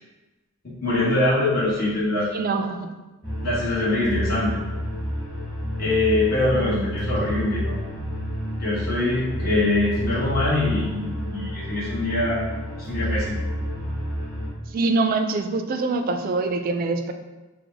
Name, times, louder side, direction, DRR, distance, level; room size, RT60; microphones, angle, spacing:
voice 1, 0.8-2.6 3.4-4.6 5.7-7.8 8.6-12.5 12.8-13.3, left 2 dB, 45° left, -10 dB, 1.1 m, -23 dB
voice 2, 2.3-2.9 6.5-6.9 14.7-17.1, right 3 dB, 45° right, 7 dB, 0.3 m, -24 dB
sound 1, 3.2-14.5, equal, 5° left, 1.2 m, -29 dB
4.6 x 2.0 x 3.8 m, 1.2 s
head